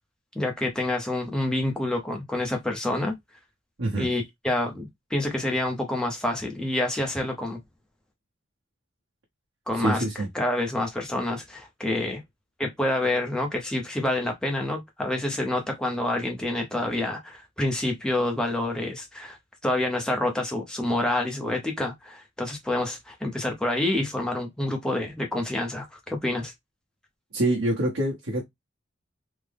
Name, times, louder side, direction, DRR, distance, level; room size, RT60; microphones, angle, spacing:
voice 1, 0.3-3.1 3.9-7.6 9.7-10.0 10.3-12.2 12.6-19.4 19.6-26.5, left 1 dB, 5° left, 0.6 m, -27 dB
voice 2, 3.8-4.1 9.7-10.3 27.3-28.4, right 1 dB, 85° right, 1.0 m, -25 dB
3.6 x 2.1 x 3.3 m
head